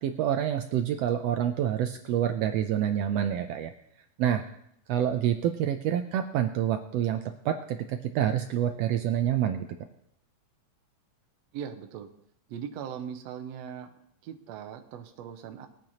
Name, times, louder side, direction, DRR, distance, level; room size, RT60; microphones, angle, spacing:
voice 1, 0.0-3.7 4.2-4.4 4.9-7.2 7.4-9.7, right 10 dB, 85° right, 7 dB, 1.4 m, -27 dB
voice 2, 11.5-12.1 12.5-13.9 14.2-15.7, right 8 dB, 70° right, 5 dB, 1.8 m, -39 dB
21.0 x 9.1 x 2.9 m, 0.74 s
omnidirectional pair, 3.6 m